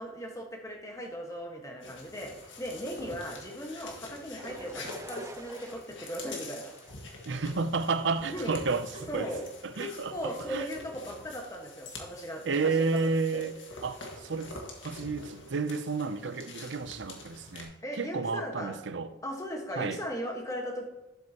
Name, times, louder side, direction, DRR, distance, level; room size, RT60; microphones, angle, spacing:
voice 1, 0.0-6.7 8.3-8.5 9.1-9.4 9.8-12.8 13.3-13.5 17.8-18.8 19.2-20.9, equal, 15° left, 1.4 m, -38 dB
sound 1, 1.8-17.6, left 2 dB, 80° left, 1.8 m, -46 dB
sound 2, 4.4-8.3, right 2 dB, 15° right, 0.4 m, -49 dB
voice 2, 7.2-9.3 9.6-10.1 10.5-10.7 12.5-13.5 13.8-14.5 14.8-19.1 19.7-20.0, right 4 dB, 70° right, 0.6 m, -31 dB
11.5 x 7.7 x 2.9 m
head